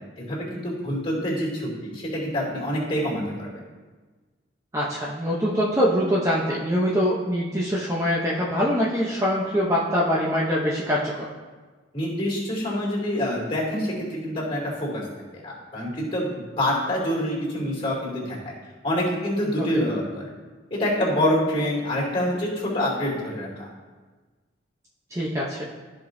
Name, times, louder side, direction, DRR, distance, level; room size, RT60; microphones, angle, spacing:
voice 1, 0.0-3.5 11.9-15.0 15.3-18.4 18.8-20.3 20.7-23.7, equal, 25° left, -4 dB, 2.6 m, -26 dB
voice 2, 4.7-11.1 19.6-19.8 25.1-25.7, equal, 15° right, -5 dB, 0.7 m, -24 dB
13.5 x 5.1 x 2.7 m, 1.4 s
head